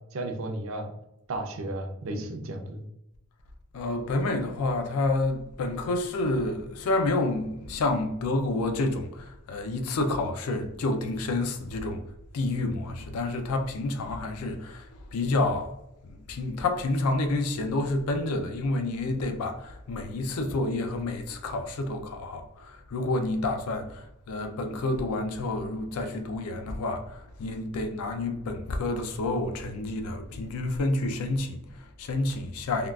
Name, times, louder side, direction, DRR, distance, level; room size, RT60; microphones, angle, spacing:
voice 1, 0.1-0.9 1.3-2.9, right 2 dB, 60° right, 0.5 m, -33 dB
voice 2, 3.7-12.0 12.3-15.8 16.1-32.9, left 2 dB, 85° left, 0.4 m, -29 dB
3.6 x 2.3 x 2.3 m
head